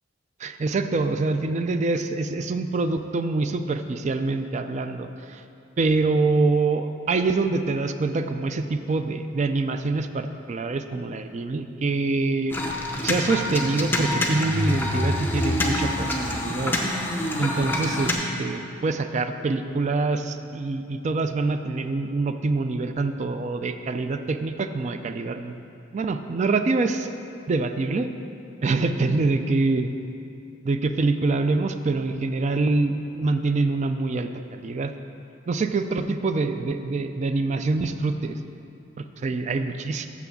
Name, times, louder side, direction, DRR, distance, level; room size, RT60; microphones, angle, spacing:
voice 1, 0.4-5.4 5.8-12.6 13.0-16.8 17.4-25.6 25.9-27.1 27.5-28.1 28.6-29.9 30.6-34.9 35.5-38.4 39.0-40.1, right 3 dB, 35° right, 9 dB, 0.3 m, -25 dB
sound 1, 12.5-18.1, left 1 dB, 10° left, 0.7 m, -26 dB
6.0 x 5.9 x 6.9 m, 2.6 s
head